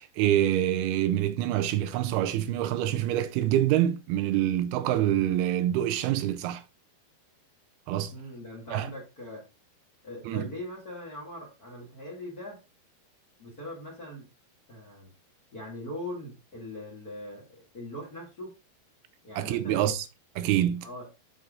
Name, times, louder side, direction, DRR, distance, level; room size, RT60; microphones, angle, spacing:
voice 1, 0.0-6.6 7.9-8.1 8.7-8.9 10.3-10.5 19.3-20.1 20.4-20.9, right 12 dB, 80° right, 2.6 m, -26 dB
voice 2, 8.1-9.4 10.0-12.6 13.4-14.3 14.7-15.1 15.5-18.5 19.2-19.9 20.8-21.1, left 1 dB, 30° left, 2.0 m, -41 dB
8.3 x 5.3 x 3.7 m
omnidirectional pair, 4.6 m